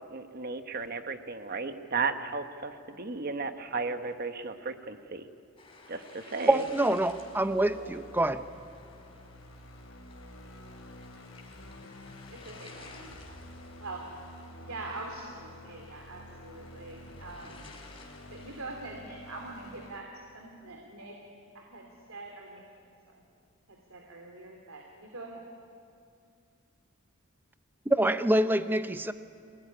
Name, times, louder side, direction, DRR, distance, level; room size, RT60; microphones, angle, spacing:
voice 1, 0.0-5.3 5.9-6.6, right 4 dB, 45° right, 8 dB, 1.1 m, -34 dB
sound 1, 5.6-18.6, left 3 dB, 25° left, 3.5 m, -54 dB
voice 2, 6.5-8.4 27.9-29.1, right 1 dB, 10° right, 11 dB, 0.6 m, -26 dB
sound 2, 6.7-20.0, left 1 dB, 75° left, 2.8 m, -50 dB
voice 3, 7.7-8.1 11.8-11.9 12.3-13.4 13.8-14.1 14.6-17.7 18.3-21.2 21.5-23.2 23.7-25.4, right 2 dB, 85° right, 1 dB, 2.9 m, -44 dB
25.5 x 18.5 x 10.0 m, 2.4 s
head